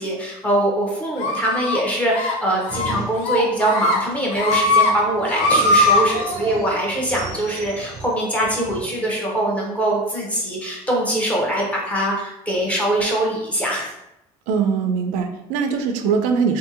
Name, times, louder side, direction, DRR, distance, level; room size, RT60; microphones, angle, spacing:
voice 1, 0.0-13.9, right 1 dB, 10° left, -3 dB, 0.6 m, -23 dB
sound 1, 1.2-1.8 2.1-2.3 2.7-2.9 3.2-4.0 4.3-4.9 5.2-6.0, left 2 dB, 70° left, 0.5 m, -19 dB
sound 2, 2.7-3.6 3.9-8.8, right 3 dB, 30° right, 0.5 m, -33 dB
voice 2, 14.5-16.6, right 6 dB, 90° right, 5 dB, 0.4 m, -21 dB
2.7 x 2.6 x 2.6 m, 0.87 s
cardioid pair, 145°, 13 cm